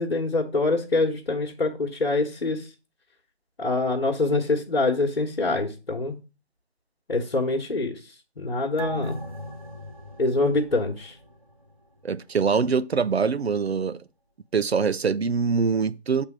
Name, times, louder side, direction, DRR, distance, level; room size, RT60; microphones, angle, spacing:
voice 1, 0.0-2.7 3.6-6.2 7.1-8.0 8.4-9.2 10.2-11.1, left 2 dB, 60° left, 1.4 m, -25 dB
sound 1, 8.8-11.7 12.0-12.1, equal, 35° right, 0.8 m, -36 dB
voice 2, 12.0-14.0 14.5-16.2, right 5 dB, 70° right, 0.6 m, -24 dB
7.4 x 3.5 x 4.8 m
figure-of-eight pair, 165°, 33 cm